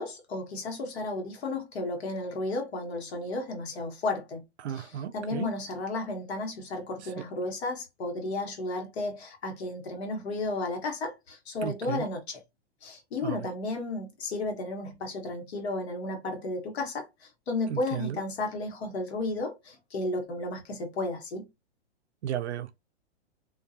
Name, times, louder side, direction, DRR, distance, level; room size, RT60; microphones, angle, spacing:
voice 1, 0.0-4.4 4.7-12.4 12.8-21.5, left 2 dB, 70° left, 1.2 m, -33 dB
voice 2, 4.6-5.5 11.6-12.1 13.2-13.5 17.7-18.2 22.2-22.8, right 10 dB, 80° right, 0.5 m, -34 dB
2.4 x 2.4 x 2.6 m
hypercardioid pair, 120°, 33 cm